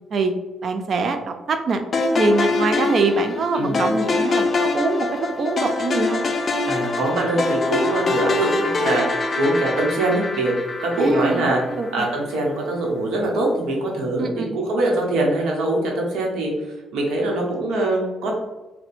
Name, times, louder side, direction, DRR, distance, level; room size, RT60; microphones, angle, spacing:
voice 1, 0.6-1.8 2.2-6.3 11.0-12.1 14.2-14.5, right 3 dB, 55° right, 7 dB, 0.4 m, -23 dB
sound 1, 1.9-12.2, left 3 dB, 40° left, 0.4 m, -24 dB
voice 2, 6.6-10.5 10.8-11.6 11.9-16.5 16.9-18.3, right 1 dB, 80° right, -1 dB, 0.9 m, -23 dB
2.7 x 2.1 x 4.1 m, 1.1 s
cardioid pair, 90°, 0 cm